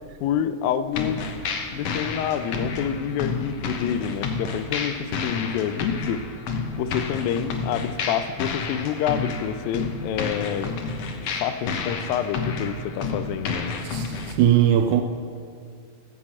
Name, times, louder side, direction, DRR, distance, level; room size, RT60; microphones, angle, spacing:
voice 1, 0.2-1.3 1.7-6.2 6.8-10.8 11.2-13.8, left 9 dB, 90° left, 2.4 m, -28 dB
sound 1, 0.9-14.3, left 4 dB, 75° left, 1.5 m, -30 dB
voice 2, 13.8-15.0, right 10 dB, 80° right, 1.9 m, -20 dB
15.5 x 5.8 x 7.5 m
omnidirectional pair, 4.0 m